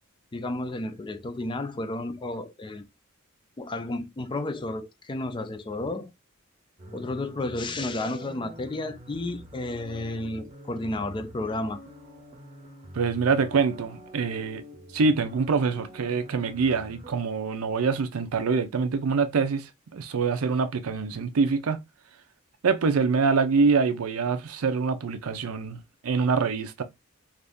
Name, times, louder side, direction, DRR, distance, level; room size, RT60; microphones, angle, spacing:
voice 1, 0.3-2.8 3.6-6.1 6.9-11.8, left 2 dB, 20° left, 0.3 m, -32 dB
sound 1, 6.8-17.1, equal, 30° right, 0.7 m, -46 dB
voice 2, 12.9-14.6 14.9-21.8 22.6-26.8, right 4 dB, 90° right, 0.5 m, -25 dB
2.6 x 2.4 x 3.5 m
head